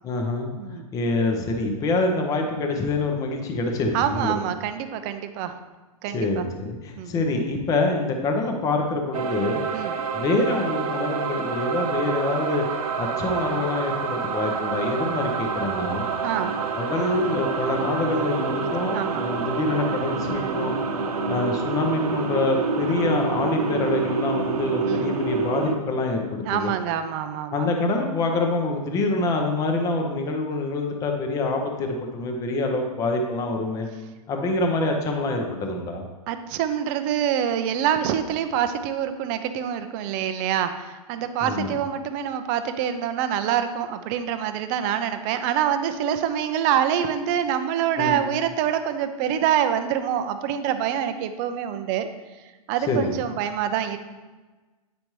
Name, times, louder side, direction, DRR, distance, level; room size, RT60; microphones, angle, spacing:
voice 1, 0.0-0.5 0.9-4.3 6.1-9.6 10.1-12.7 13.0-16.1 16.7-20.8 21.3-26.7 27.5-33.9 34.3-36.0 41.4-41.7 48.0-48.2 52.9-53.1, left 2 dB, 20° left, 2 dB, 0.7 m, -25 dB
voice 2, 3.9-5.6 6.0-6.4 7.0-7.1 9.7-9.9 16.2-16.5 18.9-19.3 20.3-20.7 24.8-25.1 26.4-27.7 36.3-52.1 52.7-54.0, right 9 dB, 30° right, 9 dB, 0.5 m, -26 dB
sound 1, 9.1-25.7, right 5 dB, 75° right, 1.0 m, -27 dB
8.6 x 5.2 x 3.1 m, 1.2 s
hypercardioid pair, 145°, 19 cm